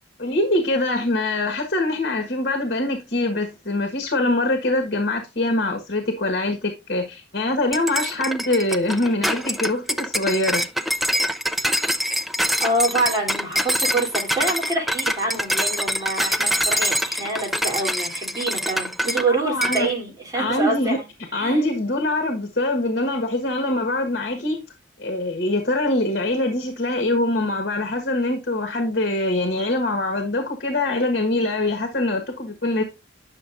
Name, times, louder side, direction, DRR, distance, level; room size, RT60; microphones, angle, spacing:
voice 1, 0.2-10.7 19.4-19.9 20.3-21.0 21.3-24.6 25.0-32.8, left 2 dB, 55° left, 1.5 m, -23 dB
sound 1, 7.7-19.3 19.6-19.9, equal, ahead, 0.4 m, -24 dB
voice 2, 12.6-21.1 21.4-21.6, right 2 dB, 20° right, 3.2 m, -26 dB
9.8 x 6.3 x 2.5 m
head